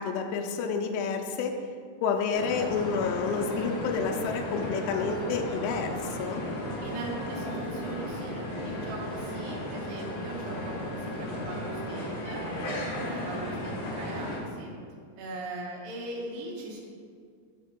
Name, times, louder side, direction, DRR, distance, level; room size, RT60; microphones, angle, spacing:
voice 1, 0.0-1.5 2.0-6.4, left 5 dB, 90° left, 4 dB, 2.7 m, -29 dB
sound 1, 2.3-14.4, left 1 dB, 60° left, 2.5 m, -35 dB
voice 2, 6.8-12.4 13.0-14.7 15.2-16.8, right 2 dB, 70° right, -2 dB, 2.6 m, -40 dB
6.6 x 3.5 x 6.1 m, 2.1 s
omnidirectional pair, 4.8 m